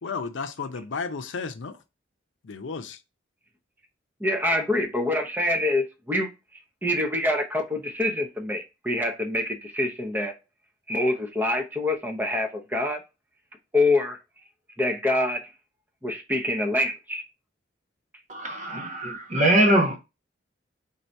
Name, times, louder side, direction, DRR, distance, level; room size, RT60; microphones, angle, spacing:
voice 1, 0.0-1.8 2.4-3.0, left 5 dB, 90° left, 0.6 m, -33 dB
voice 2, 4.2-6.3 6.8-10.3 10.9-13.0 13.7-14.2 14.8-15.5 16.0-17.2, left 1 dB, 10° right, 0.8 m, -25 dB
voice 3, 18.3-20.0, right 1 dB, 40° right, 1.0 m, -22 dB
3.9 x 2.8 x 4.4 m
head